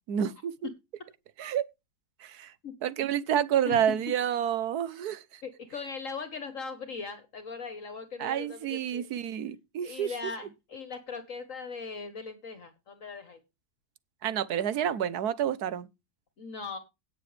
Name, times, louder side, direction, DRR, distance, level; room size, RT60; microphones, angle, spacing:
voice 1, 0.1-0.5 1.4-1.7 2.2-2.5 2.8-5.4 8.2-10.1 14.2-15.9, right 9 dB, 70° right, 1.3 m, -29 dB
voice 2, 2.6-3.1 3.7-3.9 5.4-9.1 9.8-13.4 16.4-16.8, left 5 dB, 55° left, 1.6 m, -39 dB
17.0 x 7.0 x 3.3 m
omnidirectional pair, 1.7 m